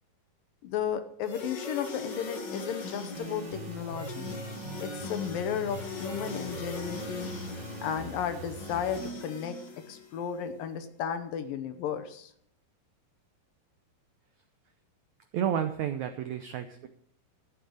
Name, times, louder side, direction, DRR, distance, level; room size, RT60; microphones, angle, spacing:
voice 1, 0.6-4.3 4.8-7.3 7.8-9.6 9.9-12.3, left 8 dB, 70° left, 9 dB, 2.6 m, -34 dB
sound 1, 1.2-10.4, left 3 dB, 40° left, 1.7 m, -41 dB
sound 2, 3.1-9.1, right 2 dB, 60° right, 3.7 m, -42 dB
voice 2, 15.3-16.9, right 9 dB, 85° right, 8 dB, 1.6 m, -31 dB
13.5 x 8.7 x 6.5 m, 0.66 s
omnidirectional pair, 4.4 m